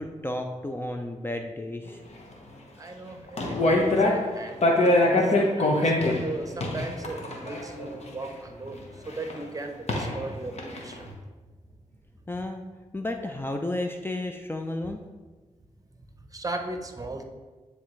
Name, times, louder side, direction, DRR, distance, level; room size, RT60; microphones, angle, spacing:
voice 1, 0.0-2.0 12.3-12.6 12.9-15.0, left 1 dB, 15° left, 4 dB, 0.5 m, -32 dB
voice 2, 2.8-4.6 5.2-11.2 16.3-17.2, right 2 dB, 25° right, 5 dB, 0.8 m, -37 dB
sound 1, 3.3-4.4 4.6-8.2 9.3-9.4 9.9-10.3 10.6-10.9, left 2 dB, 55° left, 1.1 m, -23 dB
9.7 x 3.5 x 3.2 m, 1.3 s
cardioid pair, 55°, 13 cm